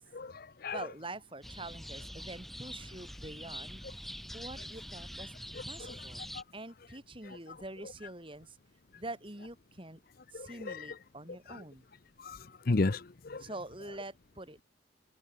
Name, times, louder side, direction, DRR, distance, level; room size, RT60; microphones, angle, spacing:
voice 1, 0.1-0.9 5.8-5.9 6.3-6.4 7.2-7.6 10.3-10.9 11.5-11.6 12.2-13.4, left 3 dB, 50° left, 0.7 m, -34 dB
voice 2, 0.7-3.9 4.3-5.3 5.7-8.6 8.9-10.0 10.3-11.9 13.4-14.6, right 2 dB, 25° right, 3.9 m, -45 dB
sound 1, 1.4-6.4, equal, ahead, 4.7 m, -45 dB
open air
head